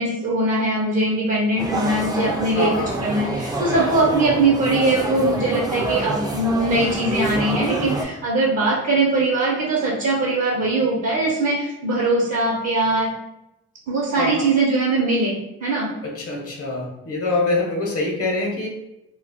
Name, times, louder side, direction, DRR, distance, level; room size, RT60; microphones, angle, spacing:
voice 1, 0.0-2.7 3.0-13.1 13.9-15.9, right 2 dB, 55° right, -4 dB, 0.7 m, -21 dB
sound 1, 1.6-8.0, right 2 dB, 15° right, 0.4 m, -26 dB
voice 2, 2.5-3.0 14.2-14.5 16.0-18.7, left 2 dB, 50° left, -1 dB, 0.8 m, -24 dB
2.3 x 2.0 x 3.5 m, 0.87 s
cardioid pair, 90°, 30 cm